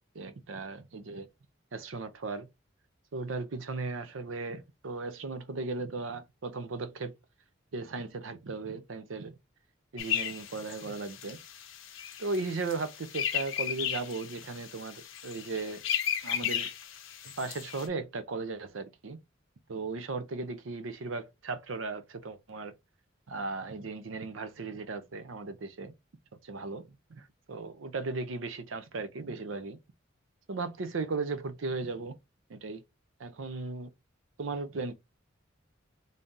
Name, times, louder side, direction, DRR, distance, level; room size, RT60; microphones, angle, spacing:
voice 1, 0.1-1.3 1.7-2.5 3.1-7.2 7.7-9.3 9.9-11.4 12.2-15.8 16.2-16.7 17.4-19.2 19.7-22.7 23.3-25.9 26.4-29.8 30.5-32.2 32.5-32.8 33.2-33.9 34.4-34.9, right 3 dB, 75° right, 0.6 m, -36 dB
sound 1, 10.0-17.9, left 9 dB, 75° left, 0.7 m, -35 dB
3.3 x 2.7 x 3.6 m
head